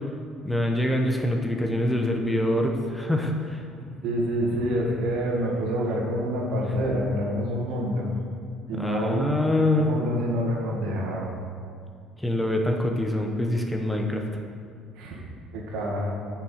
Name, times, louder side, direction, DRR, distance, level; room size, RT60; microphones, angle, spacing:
voice 1, 0.4-3.6 8.7-9.9 12.2-14.2, left 1 dB, 5° left, 2 dB, 0.9 m, -25 dB
voice 2, 3.7-8.1 8.7-9.3 9.7-11.3 15.0-15.2 15.5-16.1, equal, 75° right, -2 dB, 2.0 m, -27 dB
6.7 x 6.1 x 6.5 m, 2.3 s
supercardioid pair, 95°, 0 cm